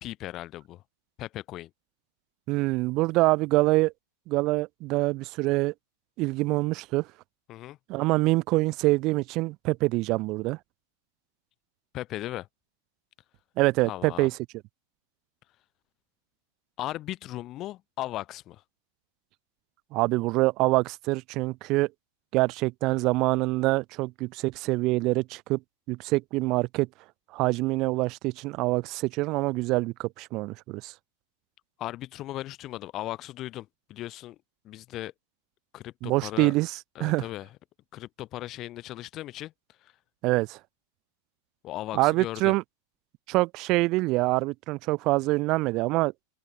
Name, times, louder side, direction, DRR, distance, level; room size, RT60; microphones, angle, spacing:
voice 1, 0.0-0.8 1.2-1.7 7.5-7.8 11.9-12.5 13.9-14.3 16.8-18.6 31.8-34.4 34.6-35.1 35.7-36.5 37.0-37.5 37.9-39.5 39.8-39.9 41.6-42.6, left 15 dB, 35° left, 2.0 m, -37 dB
voice 2, 2.5-3.9 4.3-5.7 6.2-7.1 7.9-10.6 13.6-14.3 19.9-21.9 22.3-25.6 25.9-26.9 27.3-30.9 36.0-37.2 40.2-40.6 41.9-42.6 43.3-46.1, right 21 dB, 40° right, 1.5 m, -25 dB
figure-of-eight pair, 90°, 0 cm